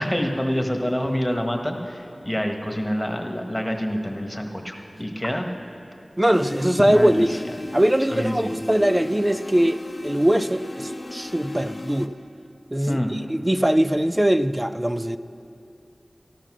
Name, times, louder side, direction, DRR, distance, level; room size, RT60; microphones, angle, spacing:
voice 1, 0.0-5.5 6.8-7.4 8.1-8.5 12.9-13.2, equal, 10° left, 3 dB, 1.5 m, -27 dB
voice 2, 6.2-7.3 7.7-12.1 12.7-15.2, right 1 dB, 20° right, 12 dB, 0.4 m, -21 dB
sound 1, 6.3-12.1, left 1 dB, 50° left, 0.8 m, -35 dB
13.5 x 13.0 x 6.2 m, 2.6 s
wide cardioid pair, 55°, 0 cm